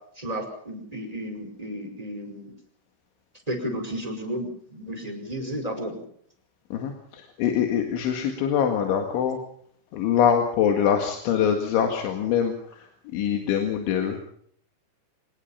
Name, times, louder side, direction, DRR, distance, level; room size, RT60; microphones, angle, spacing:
voice 1, 0.2-2.5 3.5-6.0, equal, 5° right, 3 dB, 4.5 m, -33 dB
voice 2, 6.7-9.4 9.9-14.2, left 8 dB, 70° left, 3 dB, 4.1 m, -24 dB
25.0 x 19.5 x 5.7 m, 0.64 s
omnidirectional pair, 5.9 m